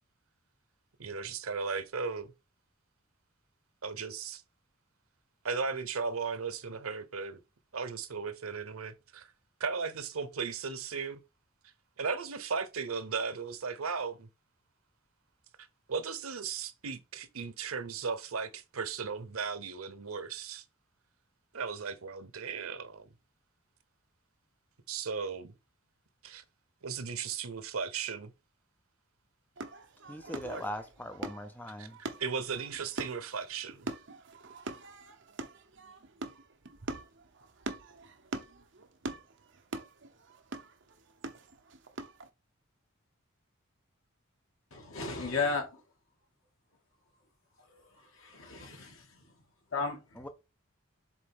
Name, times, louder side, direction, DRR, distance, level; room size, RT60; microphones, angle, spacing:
voice 1, 1.0-2.3 3.8-4.4 5.4-7.4 7.7-9.3 9.6-11.2 12.0-14.3 15.9-20.6 21.5-23.1 24.9-25.5 26.2-26.4 26.8-28.3 31.8-31.9 32.2-33.9, right 5 dB, 85° right, 0.9 m, -36 dB
sound 1, 29.6-42.3, right 2 dB, 55° right, 0.9 m, -43 dB
voice 2, 30.1-32.0 50.2-50.3, left 1 dB, 10° left, 0.6 m, -40 dB
voice 3, 44.7-45.7 48.2-49.1 49.7-50.0, left 4 dB, 70° left, 2.4 m, -33 dB
7.3 x 3.9 x 3.6 m
head